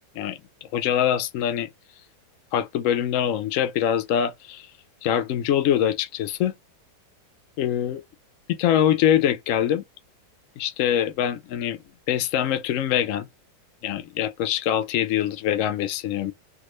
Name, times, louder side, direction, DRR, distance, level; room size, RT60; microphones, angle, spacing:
voice 1, 0.2-1.7 2.5-4.7 5.0-6.5 7.6-8.0 8.5-9.8 10.6-11.8 12.1-13.3 13.8-16.3, left 10 dB, 80° left, 0.7 m, -24 dB
3.5 x 2.3 x 3.0 m
omnidirectional pair, 1.9 m